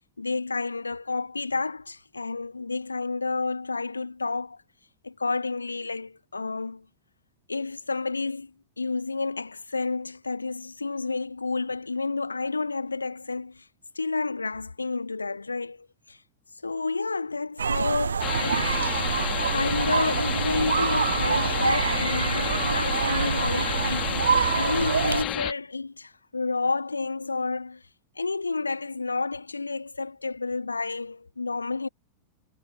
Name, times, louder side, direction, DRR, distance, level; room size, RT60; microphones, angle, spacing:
voice 1, 0.2-4.6 5.0-6.9 7.5-13.7 14.0-16.2 16.6-18.7 19.5-27.8 28.2-31.9, left 3 dB, 80° left, 2.0 m, -30 dB
sound 1, 17.6-25.2, right 6 dB, 70° right, 0.7 m, -26 dB
White Noise, 18.2-25.5, left 15 dB, 35° left, 2.8 m, -31 dB
figure-of-eight pair, 90°, 0 cm